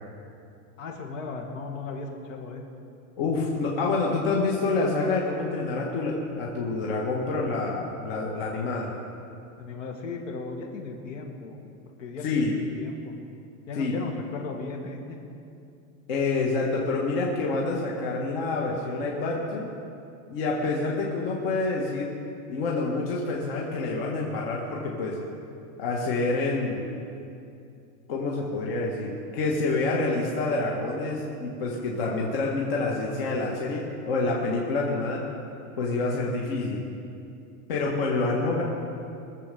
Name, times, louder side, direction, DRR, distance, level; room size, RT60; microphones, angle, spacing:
voice 1, 0.8-2.6 9.6-11.6 12.0-13.1 13.7-15.2, left 4 dB, 55° left, 2 dB, 2.1 m, -36 dB
voice 2, 3.2-8.9 12.2-12.5 13.7-13.9 16.1-19.7 20.3-22.1 22.5-25.2 25.8-26.8 28.1-35.2 35.8-36.8 37.7-38.6, left 3 dB, 35° left, -3 dB, 1.6 m, -27 dB
22.0 x 7.6 x 6.9 m, 2.6 s
supercardioid pair, 180°, 47 cm